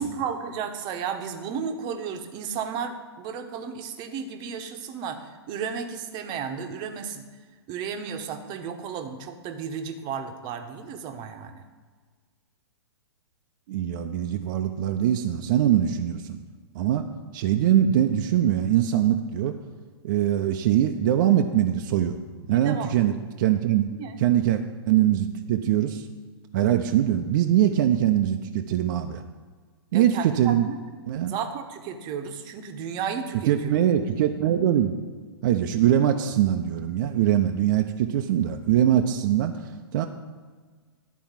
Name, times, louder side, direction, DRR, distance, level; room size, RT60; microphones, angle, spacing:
voice 1, 0.0-7.3 7.7-11.6 22.5-22.9 24.0-24.2 29.9-30.8 31.3-33.7, right 6 dB, 30° right, 7 dB, 1.0 m, -33 dB
voice 2, 13.7-16.4 16.8-17.1 17.3-19.6 20.0-22.2 22.5-23.9 24.2-26.0 26.5-29.2 29.9-30.7 31.1-31.3 33.5-34.9 35.4-39.5 39.9-40.1, right 11 dB, 50° right, 5 dB, 0.7 m, -22 dB
11.5 x 4.6 x 7.3 m, 1.5 s
hypercardioid pair, 125°, 14 cm